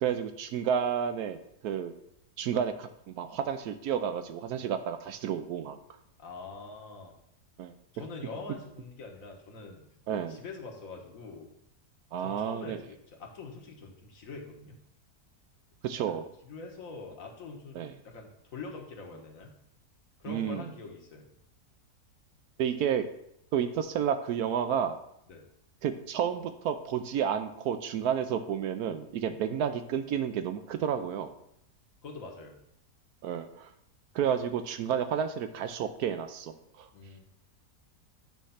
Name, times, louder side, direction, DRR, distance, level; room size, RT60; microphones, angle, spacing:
voice 1, 0.0-1.9 2.4-5.8 7.6-7.7 10.1-10.4 12.1-12.8 15.8-16.3 17.7-17.9 20.3-20.7 22.6-23.1 23.5-25.0 25.8-31.3 33.2-33.7 34.1-36.9, right 8 dB, 75° right, 9 dB, 1.1 m, -31 dB
voice 2, 6.2-7.2 7.9-9.8 10.1-11.5 12.2-14.8 16.4-17.8 18.0-19.5 20.2-21.3 25.3-25.4 32.0-32.6 36.9-37.2, left 4 dB, 60° left, 1 dB, 1.5 m, -44 dB
9.0 x 3.2 x 5.6 m, 0.76 s
omnidirectional pair, 1.7 m